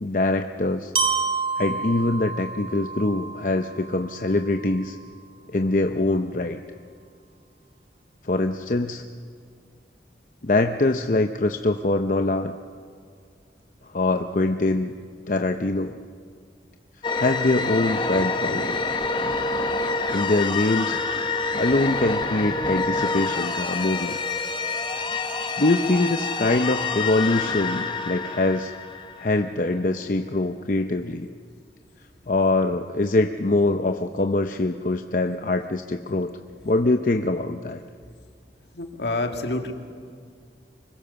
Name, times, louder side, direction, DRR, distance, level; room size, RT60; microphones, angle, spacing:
voice 1, 0.0-0.9 1.6-5.0 5.5-6.6 8.2-9.0 10.4-12.5 13.9-14.9 15.3-16.0 17.2-18.8 20.1-21.0 21.5-24.2 25.6-28.7 29.2-31.3 32.3-36.3 36.6-37.8, left 2 dB, 45° left, 6 dB, 0.7 m, -23 dB
Glockenspiel, 0.9-4.9, right 4 dB, 30° right, 1.8 m, -29 dB
sound 1, 17.0-29.5, left 3 dB, 25° left, 1.3 m, -27 dB
voice 2, 38.7-39.7, left 2 dB, 70° left, 4 dB, 2.1 m, -27 dB
25.0 x 21.5 x 7.0 m, 2.1 s
head